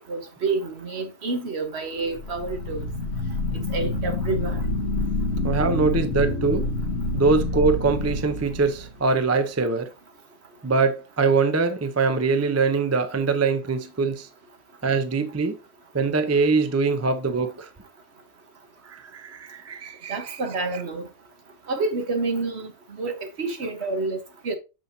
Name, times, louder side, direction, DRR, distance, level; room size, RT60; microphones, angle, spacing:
voice 1, 0.1-2.8 3.7-4.6 20.1-21.1 21.7-24.6, right 3 dB, 60° right, 1.4 m, -28 dB
sound 1, 2.1-9.1, left 2 dB, 85° left, 1.3 m, -27 dB
voice 2, 5.4-6.7 7.1-9.9 10.6-14.3 14.8-15.6 15.9-17.7 18.8-20.4, right 4 dB, 20° right, 0.4 m, -23 dB
6.8 x 6.2 x 2.7 m
omnidirectional pair, 1.3 m